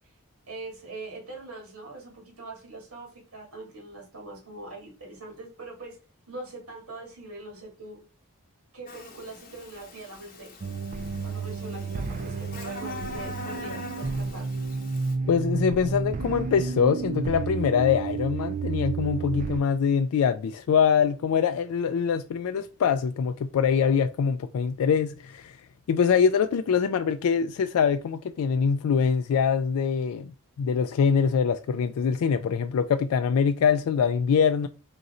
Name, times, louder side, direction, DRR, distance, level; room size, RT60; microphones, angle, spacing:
voice 1, 0.5-6.0 6.3-8.0 8.7-10.5 11.2-14.4, right 2 dB, 85° right, 1.7 m, -42 dB
Buzz, 8.9-15.1, left 2 dB, 40° left, 0.9 m, -42 dB
sound 1, 10.6-19.6, right 4 dB, 35° right, 0.3 m, -31 dB
voice 2, 15.3-25.6 25.9-34.7, left 6 dB, 75° left, 0.3 m, -24 dB
3.8 x 2.6 x 4.1 m
head